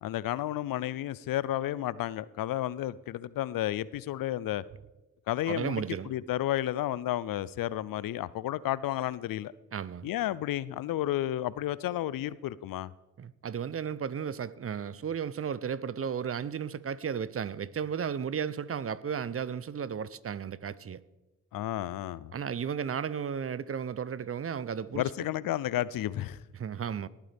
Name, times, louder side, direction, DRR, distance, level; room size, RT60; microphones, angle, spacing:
voice 1, 0.0-4.6 5.3-9.5 10.0-12.9 21.5-22.3 24.9-26.4, left 13 dB, 70° left, 0.5 m, -32 dB
voice 2, 5.5-6.1 9.7-10.1 13.2-21.0 22.3-25.0 26.5-27.1, right 7 dB, 40° right, 0.6 m, -34 dB
18.5 x 9.1 x 3.4 m
supercardioid pair, 45°, 35 cm